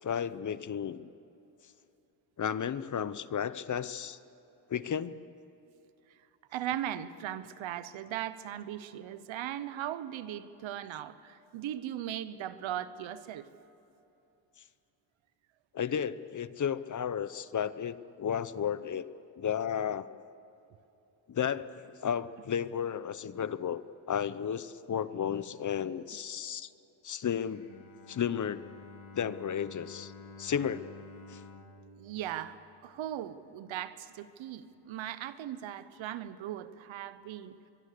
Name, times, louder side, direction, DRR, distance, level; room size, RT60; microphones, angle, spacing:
voice 1, 0.0-1.1 2.4-4.2 4.7-5.1 15.7-19.1 19.4-20.1 21.3-26.7 27.0-27.7 28.1-28.6 29.2-30.1 30.4-30.9 31.3-31.4, left 8 dB, 40° left, 15 dB, 0.8 m, -33 dB
voice 2, 6.5-13.5 32.0-37.6, right 11 dB, 85° right, 14 dB, 1.1 m, -38 dB
Bowed string instrument, 27.4-33.4, left 3 dB, 75° left, 3.6 m, -51 dB
23.5 x 23.0 x 6.8 m, 2.8 s
cardioid pair, 90°, 46 cm